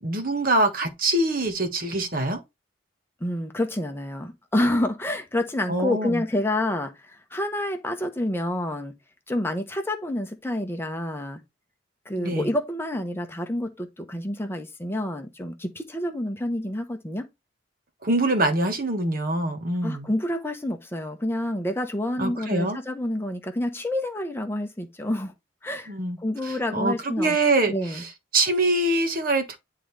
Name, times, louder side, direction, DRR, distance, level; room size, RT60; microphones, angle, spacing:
voice 1, 0.0-2.4 5.7-6.2 12.2-12.5 18.0-20.1 22.2-22.8 25.9-29.6, right 2 dB, 45° right, 1.3 m, -24 dB
voice 2, 3.2-8.9 9.3-11.4 12.1-17.3 19.8-25.3 25.6-27.4 27.7-28.0, left 1 dB, 10° left, 0.8 m, -28 dB
10.0 x 3.8 x 3.3 m
head